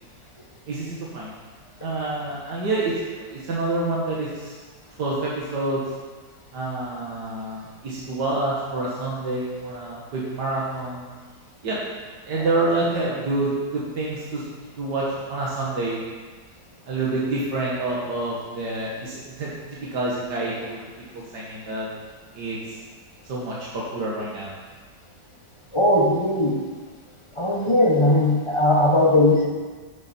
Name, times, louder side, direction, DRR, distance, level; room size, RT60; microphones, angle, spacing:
voice 1, 0.7-1.3 1.8-4.5 5.0-5.8 6.5-11.1 11.6-11.8 12.2-14.4 14.8-16.0 16.9-19.5 19.9-20.8 21.1-21.9 22.3-22.8 23.2-24.5, right 2 dB, 90° right, -6 dB, 2.3 m, -27 dB
voice 2, 25.7-26.6 27.4-29.5, left 1 dB, 20° left, -2 dB, 1.2 m, -18 dB
11.0 x 8.0 x 4.5 m, 1.4 s
omnidirectional pair, 1.7 m